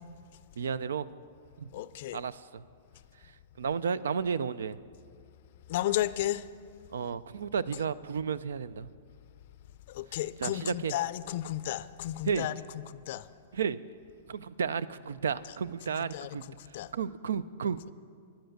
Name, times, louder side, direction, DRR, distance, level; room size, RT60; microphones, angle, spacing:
voice 1, 0.6-1.1 1.6-1.7 2.1-2.6 3.6-4.8 6.9-8.9 10.4-10.9 12.3-12.5 13.5-13.8 14.3-16.4 16.9-17.9, right 6 dB, 85° right, 0.4 m, -32 dB
voice 2, 1.7-2.2 5.7-6.5 9.9-13.3 16.0-16.3 16.6-16.9, left 14 dB, 55° left, 0.4 m, -33 dB
10.5 x 10.0 x 6.6 m
hypercardioid pair, 135°, 0 cm